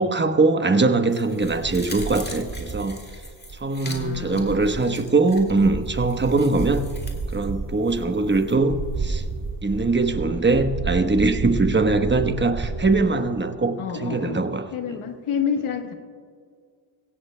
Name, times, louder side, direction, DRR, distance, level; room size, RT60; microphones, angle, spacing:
voice 1, 0.0-3.0 3.5-6.9 7.3-9.2 9.6-15.1, right 3 dB, 20° right, 7 dB, 1.1 m, -22 dB
sound 1, 1.1-8.6 8.9-9.0, left 2 dB, 20° left, 2.2 m, -43 dB
sound 2, 1.4-4.9 5.3-13.0, right 4 dB, 45° right, 1.9 m, -32 dB
voice 2, 3.8-5.0 13.8-14.4 14.7-15.9, left 7 dB, 90° left, 6 dB, 1.3 m, -29 dB
22.5 x 16.5 x 2.2 m, 2.1 s
cardioid pair, 65°, 49 cm